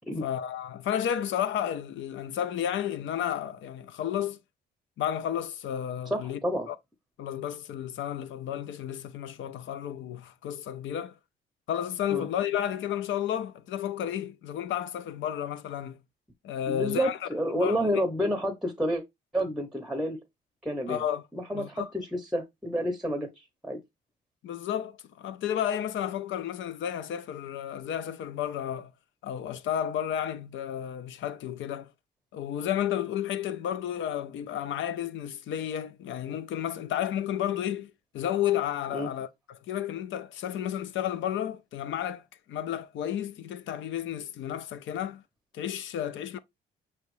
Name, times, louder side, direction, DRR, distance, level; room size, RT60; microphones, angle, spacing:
voice 1, 0.2-4.4 5.0-6.4 6.7-6.8 7.2-11.1 11.7-16.0 16.4-17.2 17.5-17.8 20.9-21.2 21.5-21.9 24.4-28.9 29.2-31.9 32.3-45.2 45.5-46.4, left 10 dB, 75° left, 0.6 m, -32 dB
voice 2, 6.1-6.7 12.1-12.3 16.7-19.0 19.3-20.2 20.6-21.0 21.3-23.8 38.9-39.1, equal, ahead, 0.8 m, -29 dB
5.5 x 3.1 x 3.1 m
cardioid pair, 90°, 20 cm